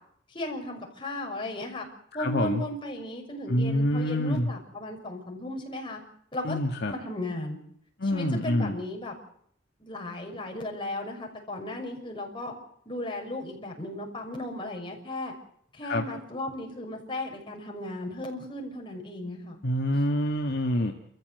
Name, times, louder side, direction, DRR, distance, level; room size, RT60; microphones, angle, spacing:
voice 1, 0.3-1.9 2.1-6.0 6.3-6.6 6.9-7.6 8.0-9.1 9.8-12.5 12.9-15.3 15.7-19.6, left 1 dB, 25° left, 1 dB, 6.2 m, -36 dB
voice 2, 2.2-2.6 3.5-4.5 6.4-6.9 8.0-8.7 15.8-16.0 19.6-20.9, left 1 dB, 55° left, 3 dB, 1.8 m, -26 dB
30.0 x 14.5 x 7.9 m, 0.67 s
head